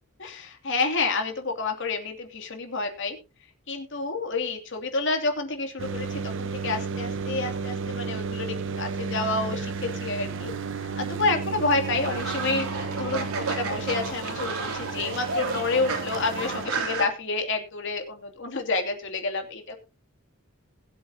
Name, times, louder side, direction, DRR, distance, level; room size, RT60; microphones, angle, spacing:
voice 1, 0.2-3.2 3.7-10.5 11.0-19.8, left 3 dB, 55° left, 5 dB, 2.7 m, -29 dB
sound 1, 5.8-16.7, right 4 dB, 60° right, 1.0 m, -33 dB
Fowl, 11.8-17.1, right 3 dB, 80° right, 3.3 m, -31 dB
21.0 x 7.8 x 2.9 m, 0.30 s
head